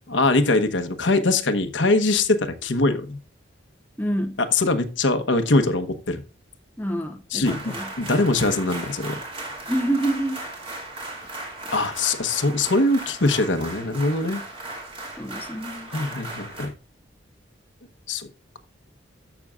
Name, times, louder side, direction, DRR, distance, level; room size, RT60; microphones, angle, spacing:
voice 1, 0.1-3.2 4.4-6.2 7.3-9.2 11.7-14.4 15.9-16.7 18.1-18.3, left 2 dB, 75° left, 1.1 m, -22 dB
voice 2, 4.0-4.4 6.8-7.9 9.7-10.4 15.2-15.9, right 1 dB, 10° left, 0.8 m, -27 dB
sound 1, 7.4-16.7, right 2 dB, 30° right, 2.5 m, -36 dB
13.5 x 6.3 x 2.4 m
head